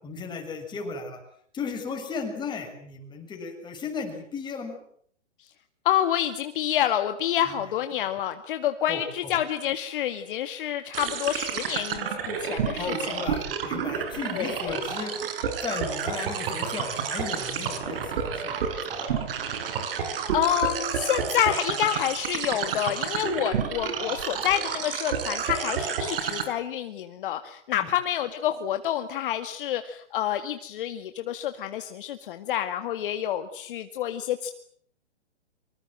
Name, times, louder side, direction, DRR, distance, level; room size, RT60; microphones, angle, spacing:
voice 1, 0.0-1.2 1.5-4.8 7.5-7.6 8.9-9.3 12.8-15.2 15.6-18.8 19.0-19.1 27.7-27.9, left 5 dB, 10° left, 3 dB, 6.9 m, -35 dB
voice 2, 5.8-13.4 14.3-14.8 20.3-34.5, left 11 dB, 45° left, 8 dB, 2.1 m, -28 dB
sound 1, 10.9-26.4, right 7 dB, 50° right, 6.7 m, -30 dB
25.5 x 25.0 x 7.7 m, 0.64 s
hypercardioid pair, 145°, 36 cm